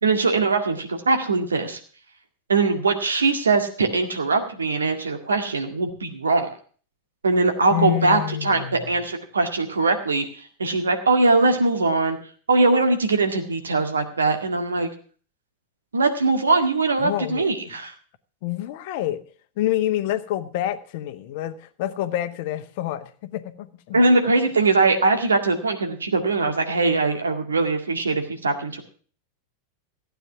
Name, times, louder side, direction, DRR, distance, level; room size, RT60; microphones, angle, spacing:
voice 1, 0.0-1.8 2.5-6.5 7.2-12.2 12.5-14.9 15.9-17.9 23.9-28.8, right 3 dB, 75° right, 6 dB, 1.9 m, -21 dB
voice 2, 7.7-8.9 17.0-17.5 18.4-19.2 19.6-24.1, left 13 dB, 50° left, 12 dB, 1.0 m, -27 dB
15.5 x 9.1 x 5.7 m, 0.42 s
figure-of-eight pair, 90°, 0 cm